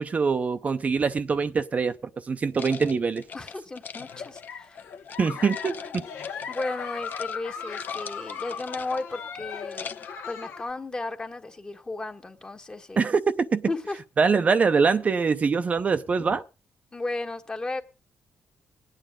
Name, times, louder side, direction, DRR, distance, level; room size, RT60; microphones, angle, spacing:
voice 1, 0.0-1.9 2.2-3.2 5.2-5.8 13.0-13.2 13.5-13.6 14.2-16.4, right 5 dB, 35° right, 0.6 m, -23 dB
sound 1, 2.6-5.2 5.5-6.8 7.0-7.4 7.6-9.2 9.6-10.2, left 6 dB, 50° left, 0.6 m, -41 dB
voice 2, 3.3-4.8 6.5-9.9 10.3-13.1 13.7-14.0 16.9-17.8, left 2 dB, 20° left, 1.2 m, -34 dB
Giggle, 4.0-10.7, left 7 dB, 80° left, 1.4 m, -37 dB
24.0 x 9.1 x 3.6 m
cardioid pair, 105°, 4 cm